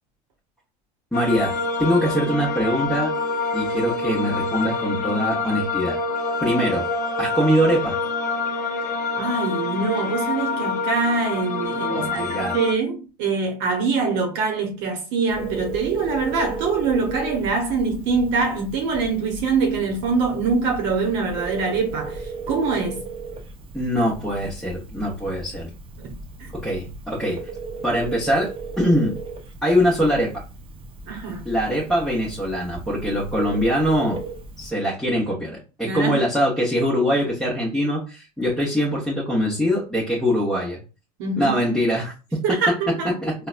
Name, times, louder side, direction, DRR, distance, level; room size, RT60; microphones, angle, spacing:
sound 1, 1.1-12.7, left 3 dB, 40° left, 0.9 m, -26 dB
voice 1, 1.1-1.5 1.8-3.1 3.5-6.0 6.4-6.9 7.2-8.0 11.9-12.6 23.7-25.7 26.5-27.4 27.8-28.5 28.8-29.1 29.6-30.4 31.4-34.2 34.6-40.8 41.4-42.4 43.2-43.3, equal, ahead, 1.0 m, -22 dB
voice 2, 9.2-23.1 26.0-26.1 26.4-26.5 31.1-31.4 35.8-36.2 41.2-41.6 42.4-43.1, right 4 dB, 60° right, 0.9 m, -24 dB
Telephone, 15.3-34.7, right 4 dB, 25° right, 0.6 m, -36 dB
3.8 x 2.2 x 2.4 m
hypercardioid pair, 100°, 21 cm